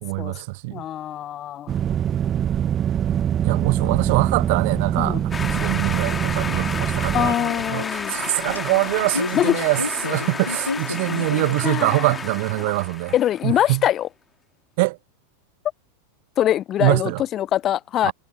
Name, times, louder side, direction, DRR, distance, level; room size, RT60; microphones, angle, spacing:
voice 1, 0.0-0.8 3.4-13.1 13.4-13.8 14.8-15.0 16.8-17.2 18.0-18.1, right 25 dB, 50° right, 0.6 m, -24 dB
voice 2, 0.7-1.7 5.0-5.2 7.1-8.1 9.3-9.6 11.6-12.1 13.1-14.1 16.4-18.1, left 11 dB, 30° left, 0.6 m, -23 dB
sound 1, 1.7-7.4, right 9 dB, 25° right, 1.2 m, -23 dB
sound 2, 5.3-13.6, left 5 dB, 15° left, 2.5 m, -31 dB
sound 3, 6.1-12.1, left 3 dB, 80° left, 2.2 m, -33 dB
figure-of-eight pair, 90°, 0 cm